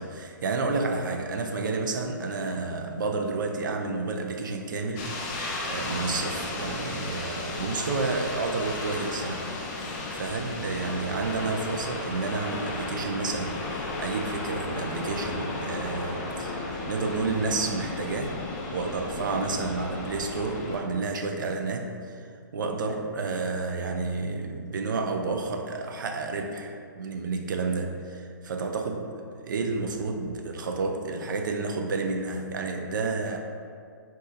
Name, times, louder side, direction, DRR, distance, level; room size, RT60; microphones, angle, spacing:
voice 1, 0.0-9.9 10.1-18.4 18.7-22.3 22.5-29.0 29.4-33.4, right 3 dB, 70° right, 3 dB, 0.4 m, -30 dB
sound 1, 5.0-20.8, left 2 dB, 25° left, 0.4 m, -34 dB
2.7 x 2.6 x 3.7 m, 2.3 s
hypercardioid pair, 150°, 11 cm